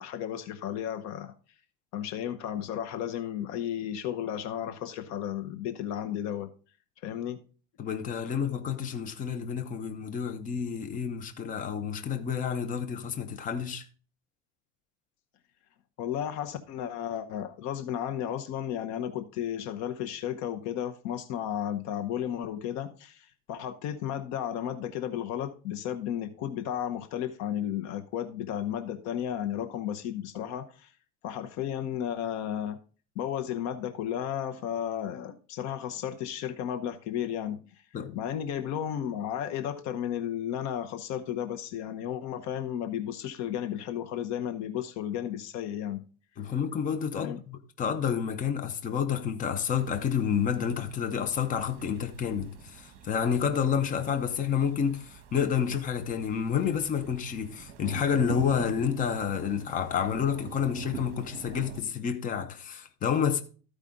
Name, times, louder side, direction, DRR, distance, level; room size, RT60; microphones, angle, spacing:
voice 1, 0.0-1.3 1.9-6.5 7.0-7.4 16.0-30.9 31.2-32.8 33.2-37.8 38.1-46.0 47.2-47.4, left 10 dB, 60° left, 0.9 m, -33 dB
voice 2, 7.8-13.9 37.9-38.2 46.4-63.4, left 7 dB, 25° left, 0.8 m, -29 dB
sound 1, 49.7-61.8, right 8 dB, 45° right, 1.3 m, -45 dB
13.5 x 4.9 x 3.7 m
cardioid pair, 155°, 31 cm